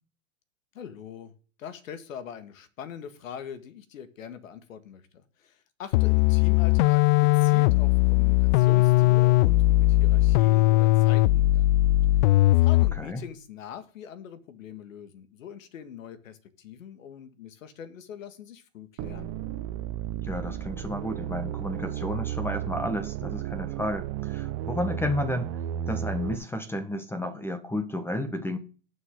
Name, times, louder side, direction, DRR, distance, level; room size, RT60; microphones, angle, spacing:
voice 1, 0.7-1.3 1.6-12.0 12.6-19.3, left 8 dB, 75° left, 10 dB, 2.0 m, -43 dB
sound 1, 5.9-13.1, left 17 dB, 40° left, 0.4 m, -20 dB
sound 2, 19.0-26.4, right 11 dB, 35° right, 1.1 m, -33 dB
voice 2, 20.2-25.5 25.9-28.6, left 1 dB, 5° left, 9 dB, 1.3 m, -32 dB
19.0 x 6.4 x 3.8 m, 0.38 s
hypercardioid pair, 125°, 40 cm